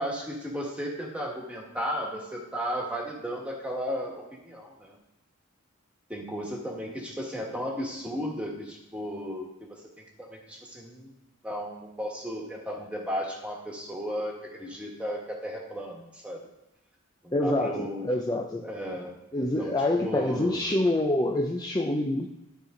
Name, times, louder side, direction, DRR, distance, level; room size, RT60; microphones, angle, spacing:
voice 1, 0.0-5.0 6.1-9.5 10.2-11.1 11.4-16.4 17.2-18.1 18.6-19.1 19.6-20.6, equal, 5° right, -2 dB, 1.7 m, -34 dB
voice 2, 17.3-18.6 19.3-22.3, left 1 dB, 20° left, 1 dB, 0.5 m, -26 dB
12.5 x 4.3 x 3.9 m, 0.94 s
head